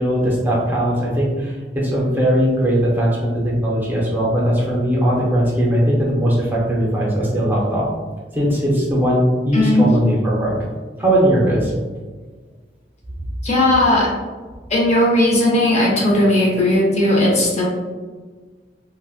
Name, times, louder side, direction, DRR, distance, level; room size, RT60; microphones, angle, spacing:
voice 1, 0.0-1.6 1.8-7.8 8.3-10.5 11.0-11.7, equal, 10° right, -5 dB, 0.7 m, -19 dB
voice 2, 9.5-9.9 13.4-14.1 14.7-17.6, left 1 dB, 40° left, -3 dB, 0.7 m, -16 dB
4.0 x 2.2 x 2.4 m, 1.4 s
head